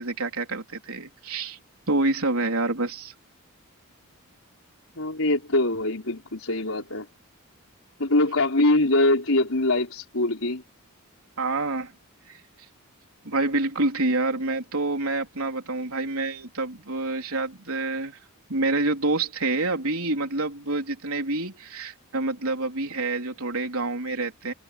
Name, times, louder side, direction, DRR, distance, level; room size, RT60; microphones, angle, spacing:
voice 1, 0.0-1.6 1.9-3.1 11.4-11.9 12.3-12.4 13.2-18.2 18.5-24.5, right 2 dB, 75° right, 3.7 m, -27 dB
voice 2, 5.0-7.1 8.0-10.6, left 2 dB, 70° left, 4.3 m, -23 dB
head